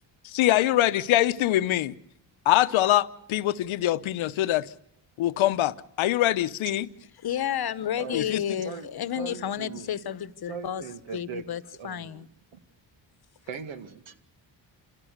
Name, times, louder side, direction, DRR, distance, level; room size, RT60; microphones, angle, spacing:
voice 1, 0.2-2.0 2.5-4.7 5.2-6.9 8.1-8.4, left 14 dB, 85° left, 0.9 m, -23 dB
voice 2, 7.2-10.8 11.1-12.3, left 10 dB, 50° left, 1.0 m, -31 dB
voice 3, 8.0-8.3 8.6-8.9 9.2-9.9 10.5-11.4 11.8-12.3 12.5-12.6 13.5-14.2, right 6 dB, 80° right, 2.1 m, -39 dB
28.0 x 16.0 x 6.6 m
cardioid pair, 100°, 47 cm